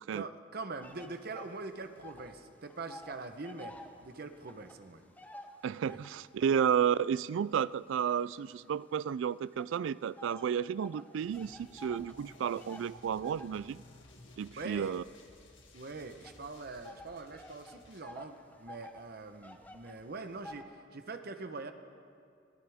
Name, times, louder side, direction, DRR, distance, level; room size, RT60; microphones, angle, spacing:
voice 1, 0.1-3.7 4.0-5.0 5.9-6.0 6.4-6.5 14.6-15.0 15.7-21.7, right 3 dB, 55° right, 8 dB, 0.9 m, -43 dB
sound 1, 0.8-2.4 2.6-6.3 6.9-9.0 9.6-20.6, left 1 dB, 10° left, 0.8 m, -52 dB
voice 2, 5.6-13.8 14.4-15.0, right 8 dB, 75° right, 19 dB, 0.3 m, -32 dB
sound 2, 11.2-18.0, left 2 dB, 75° left, 2.1 m, -57 dB
23.0 x 16.5 x 3.5 m, 2.3 s
head